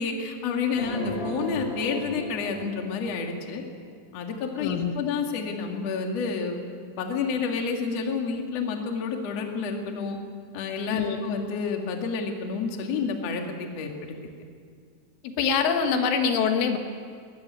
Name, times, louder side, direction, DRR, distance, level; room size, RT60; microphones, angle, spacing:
voice 1, 0.0-3.6 4.1-6.6 7.0-10.2 10.5-14.2, left 5 dB, 45° left, 2 dB, 2.3 m, -29 dB
sound 1, 0.7-3.6, right 1 dB, 15° left, 7.2 m, -34 dB
voice 2, 4.6-5.0 10.9-11.2 15.2-16.8, left 6 dB, 85° left, 5 dB, 4.0 m, -24 dB
21.0 x 16.0 x 9.4 m, 2.2 s
omnidirectional pair, 5.4 m